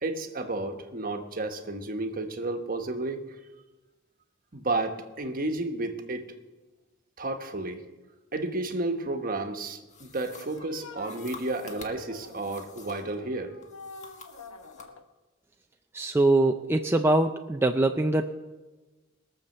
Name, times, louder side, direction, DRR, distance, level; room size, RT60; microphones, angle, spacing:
voice 1, 0.0-3.2 4.5-6.3 7.2-7.8 8.3-13.6, right 2 dB, 45° right, 5 dB, 1.3 m, -32 dB
sound 1, 8.9-9.3 10.3-12.8 13.2-15.0, left 4 dB, 90° left, 1.1 m, -48 dB
sound 2, 9.9-13.2 13.6-14.9, left 4 dB, 35° left, 1.6 m, -49 dB
voice 2, 15.9-18.3, right 2 dB, 10° right, 4 dB, 0.4 m, -23 dB
21.0 x 7.1 x 6.6 m, 1.2 s
head